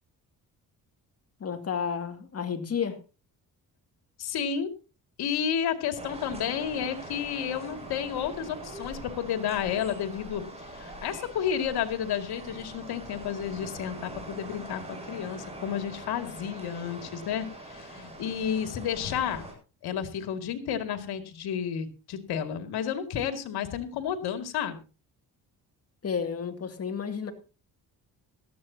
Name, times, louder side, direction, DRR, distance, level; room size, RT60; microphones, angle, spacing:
voice 1, 1.4-3.0 26.0-27.3, left 6 dB, 40° left, 6 dB, 2.4 m, -31 dB
voice 2, 4.2-4.7 5.2-19.5 19.8-24.8, left 8 dB, 85° left, 7 dB, 2.4 m, -31 dB
sound 1, 6.0-19.5, right 1 dB, 15° right, 7.6 m, -43 dB
18.0 x 14.0 x 2.8 m, 0.32 s
cardioid pair, 115°, 38 cm